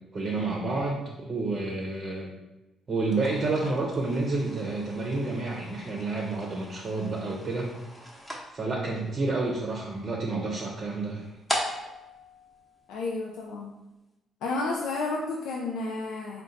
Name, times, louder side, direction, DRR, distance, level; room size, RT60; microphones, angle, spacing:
voice 1, 0.1-2.3 2.9-7.7 8.5-11.2, right 3 dB, 45° right, -1 dB, 0.6 m, -29 dB
sound 1, 3.0-13.4, equal, 10° left, 0.8 m, -40 dB
voice 2, 12.9-13.7 14.4-16.4, left 3 dB, 90° left, -2 dB, 0.4 m, -31 dB
3.8 x 2.2 x 3.9 m, 1.0 s
cardioid pair, 90°, 0 cm